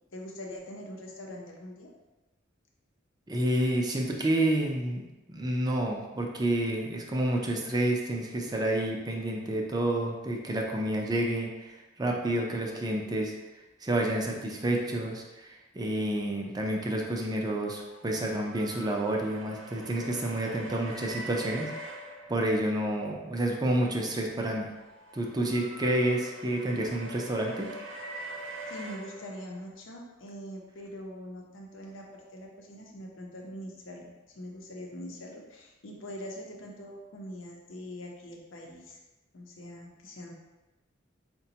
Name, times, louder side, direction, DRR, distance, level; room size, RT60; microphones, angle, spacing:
voice 1, 0.1-1.9 28.7-39.0 39.3-40.3, equal, 85° left, 0 dB, 0.7 m, -43 dB
voice 2, 3.3-5.0 5.3-13.3 13.8-24.7 25.1-27.7, right 1 dB, 20° right, 0 dB, 0.5 m, -29 dB
sound 1, 17.5-23.0 24.4-29.7, right 1 dB, 75° right, 0.5 m, -44 dB
4.9 x 2.2 x 2.8 m, 1.1 s
head